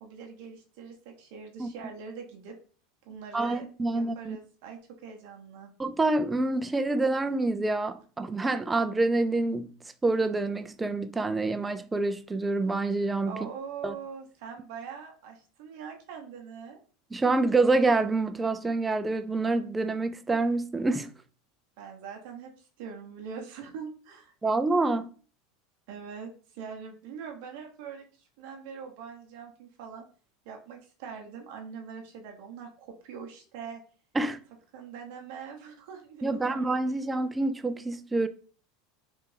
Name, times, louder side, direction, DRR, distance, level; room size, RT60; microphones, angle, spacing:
voice 1, 0.0-2.6 3.1-5.7 13.2-16.8 21.8-24.3 25.9-30.1 30.4-33.8 34.7-36.7, right 6 dB, 70° right, 0.7 m, -43 dB
voice 2, 3.3-4.4 5.8-9.7 10.0-13.5 13.8-13.9 17.1-21.1 24.4-25.1 34.2-34.4 36.2-38.3, right 2 dB, 15° right, 0.3 m, -27 dB
3.4 x 2.5 x 3.2 m
supercardioid pair, 120°, 0 cm